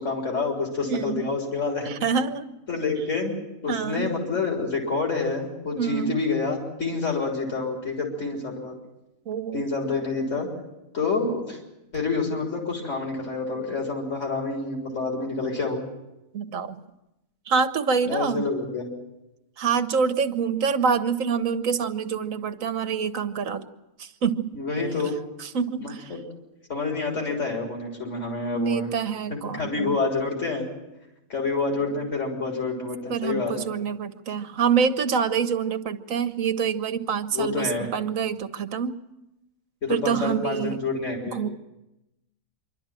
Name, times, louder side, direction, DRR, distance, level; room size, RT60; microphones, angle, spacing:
voice 1, 0.0-1.9 2.7-3.3 3.6-8.8 9.5-10.5 10.9-11.6 11.9-15.9 18.1-18.9 24.5-25.1 25.8-26.2 26.7-28.9 29.3-30.7 31.3-33.7 37.3-37.9 39.8-41.4, left 4 dB, 60° left, 0 dB, 4.2 m, -28 dB
voice 2, 0.8-1.2 1.9-2.5 3.7-4.1 5.7-6.2 9.3-9.6 16.3-16.8 17.5-18.4 19.6-23.6 24.0-24.9 25.4-26.1 28.5-30.0 33.1-39.0 39.9-40.8 41.2-41.5, right 6 dB, 70° right, 10 dB, 1.4 m, -26 dB
26.0 x 12.5 x 9.0 m, 0.94 s
omnidirectional pair, 1.5 m